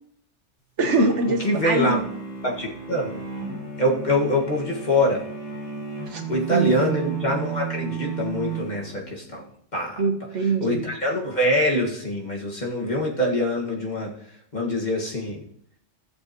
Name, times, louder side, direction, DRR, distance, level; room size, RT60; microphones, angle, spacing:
voice 1, 0.8-2.0 6.1-6.9 10.0-10.8, right 3 dB, 75° right, 5 dB, 1.5 m, -23 dB
sound 1, 1.0-9.3, right 6 dB, 80° left, 4.4 m, -34 dB
voice 2, 1.4-2.0 2.4-3.2 3.8-5.3 6.3-9.4 9.7-10.0 10.6-14.1 14.5-15.4, left 1 dB, 40° left, -2 dB, 1.9 m, -24 dB
15.5 x 6.8 x 3.0 m, 0.65 s
omnidirectional pair, 1.2 m